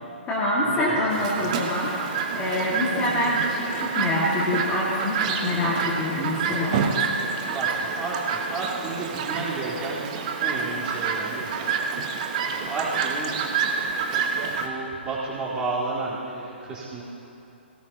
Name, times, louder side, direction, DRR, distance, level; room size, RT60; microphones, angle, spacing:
voice 1, 0.3-6.8, left 1 dB, 15° left, -6 dB, 2.0 m, -26 dB
Chirp tweet, 1.1-14.7, right 5 dB, 35° right, 1.2 m, -28 dB
voice 2, 7.5-10.0 10.4-11.7 12.4-13.7 14.5-17.0, right 3 dB, 15° right, -9 dB, 3.8 m, -32 dB
20.5 x 17.5 x 2.9 m, 2.9 s
figure-of-eight pair, 125°, 6 cm